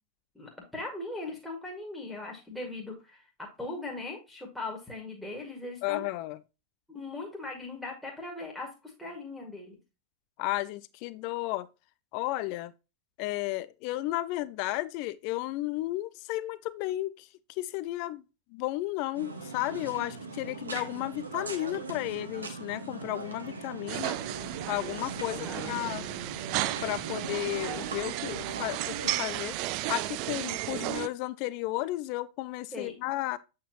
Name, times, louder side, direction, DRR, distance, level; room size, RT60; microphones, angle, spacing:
voice 1, 0.4-6.1 6.9-9.8 25.2-25.8 32.7-33.1, left 2 dB, 5° left, 1.9 m, -39 dB
voice 2, 5.8-6.4 10.4-11.7 12.1-12.7 13.2-17.3 17.6-18.2 18.5-24.2 24.7-26.0 26.8-29.6 29.9-33.4, left 17 dB, 45° left, 0.4 m, -33 dB
sound 1, 19.1-29.2, right 3 dB, 75° right, 1.3 m, -41 dB
sound 2, 23.9-31.1, right 17 dB, 45° right, 0.3 m, -34 dB
8.1 x 4.6 x 2.9 m
figure-of-eight pair, 90°, 0 cm